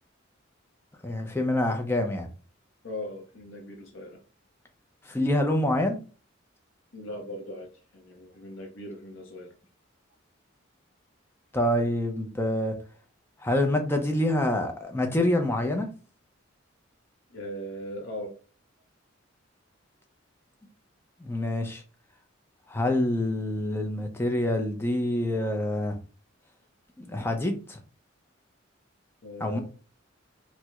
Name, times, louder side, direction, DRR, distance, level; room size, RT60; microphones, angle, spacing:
voice 1, 1.0-2.3 5.0-6.0 11.5-12.8 13.4-15.9 21.2-21.8 22.7-26.0 27.0-27.8 29.4-29.6, left 1 dB, 10° left, 3 dB, 0.4 m, -26 dB
voice 2, 2.8-4.2 6.9-9.5 17.3-18.4 29.2-29.6, left 1 dB, 70° left, 1 dB, 0.7 m, -39 dB
4.3 x 2.1 x 2.3 m, 0.37 s
head